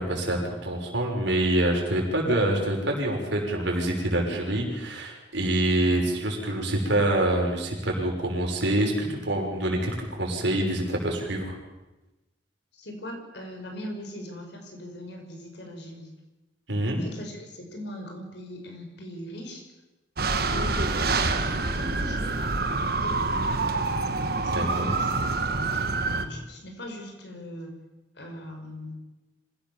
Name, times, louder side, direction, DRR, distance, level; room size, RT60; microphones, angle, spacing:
voice 1, 0.0-11.6 16.7-17.0 24.5-24.9, right 1 dB, 75° right, 0 dB, 6.1 m, -26 dB
voice 2, 12.7-16.1 16.9-19.6 20.4-23.6 24.4-27.7 28.2-29.0, left 1 dB, 65° left, 2 dB, 5.6 m, -40 dB
sound 1, 20.2-26.3, right 3 dB, 50° right, 1.5 m, -26 dB
25.5 x 16.5 x 7.3 m, 1.0 s
head